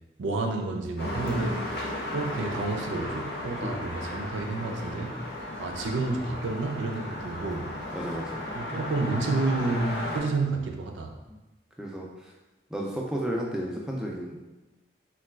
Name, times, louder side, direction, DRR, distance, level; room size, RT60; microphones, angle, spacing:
voice 1, 0.2-1.8 2.1-5.1 5.6-7.7 8.5-11.1, right 3 dB, 85° right, 3 dB, 0.4 m, -30 dB
sound 1, 1.0-10.2, left 1 dB, 55° left, 0.7 m, -35 dB
voice 2, 7.9-8.3 11.8-12.1 12.7-14.4, right 1 dB, 5° right, -3 dB, 0.3 m, -32 dB
3.9 x 2.3 x 2.3 m, 1.1 s
head